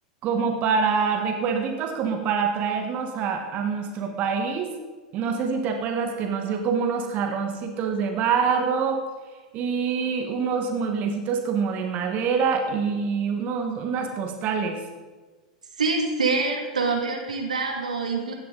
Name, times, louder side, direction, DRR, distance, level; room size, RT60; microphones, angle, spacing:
voice 1, 0.2-4.7 5.1-9.0 9.5-14.8, right 6 dB, 40° right, 4 dB, 1.7 m, -25 dB
voice 2, 15.8-18.3, right 3 dB, 85° right, 2 dB, 2.3 m, -25 dB
16.0 x 11.0 x 4.0 m, 1.3 s
figure-of-eight pair, 90°, 4 cm